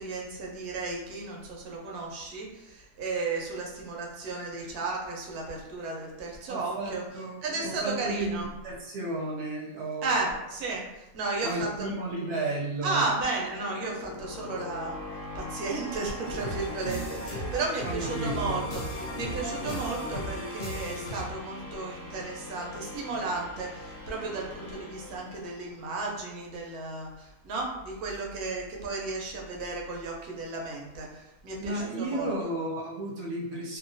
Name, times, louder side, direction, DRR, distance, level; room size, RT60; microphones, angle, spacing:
voice 1, 0.0-7.0 7.4-8.5 10.0-11.9 12.8-15.0 15.3-18.8 19.1-32.3, right 3 dB, 85° right, -2 dB, 1.1 m, -34 dB
voice 2, 6.5-10.3 11.4-13.1 17.8-18.6 31.6-33.8, right 2 dB, 65° right, -3 dB, 0.8 m, -33 dB
sound 1, 13.0-26.0, left 2 dB, 45° left, 0.8 m, -42 dB
sound 2, 16.2-21.2, equal, 85° left, 0.5 m, -36 dB
2.8 x 2.1 x 2.6 m, 0.94 s
omnidirectional pair, 1.6 m